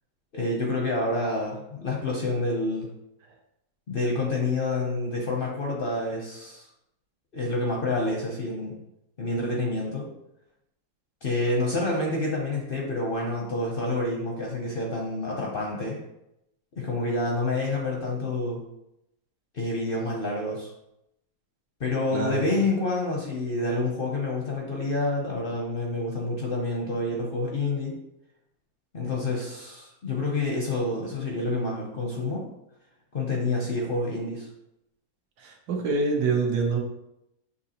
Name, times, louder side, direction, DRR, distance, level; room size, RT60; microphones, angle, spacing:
voice 1, 0.3-2.9 3.9-6.7 7.3-8.8 9.2-10.1 11.2-16.0 16.8-18.6 19.5-20.7 21.8-27.9 28.9-32.5 33.1-34.5, left 2 dB, 55° left, -1 dB, 0.6 m, -28 dB
voice 2, 22.1-22.6 35.4-36.8, right 4 dB, 85° right, 2 dB, 1.4 m, -26 dB
6.7 x 2.8 x 2.8 m, 0.84 s
omnidirectional pair, 1.8 m